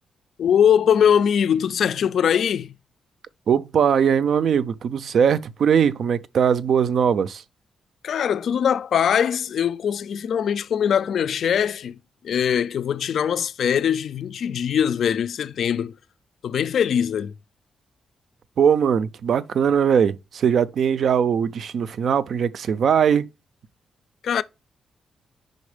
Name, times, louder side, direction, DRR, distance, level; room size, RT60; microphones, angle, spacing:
voice 1, 0.4-2.8 8.0-12.0 12.2-16.0 16.4-17.3 24.2-24.4, left 8 dB, 60° left, 0.3 m, -21 dB
voice 2, 3.5-7.4 18.6-23.3, right 7 dB, 55° right, 0.4 m, -20 dB
5.3 x 3.9 x 4.9 m
wide cardioid pair, 150°, 0 cm